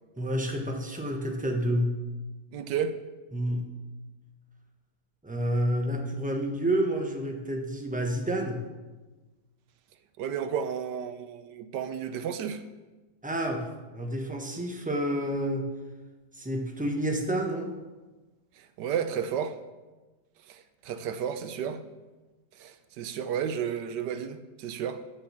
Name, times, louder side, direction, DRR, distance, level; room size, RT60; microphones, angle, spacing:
voice 1, 0.2-2.0 3.3-3.7 5.2-8.6 13.2-13.7 13.9-15.7 16.3-17.7, right 1 dB, 5° right, 0.9 m, -29 dB
voice 2, 2.5-2.9 10.2-12.6 18.6-19.6 20.5-21.8 22.6-25.0, right 8 dB, 80° right, 1.3 m, -32 dB
9.5 x 6.6 x 7.2 m
omnidirectional pair, 1.8 m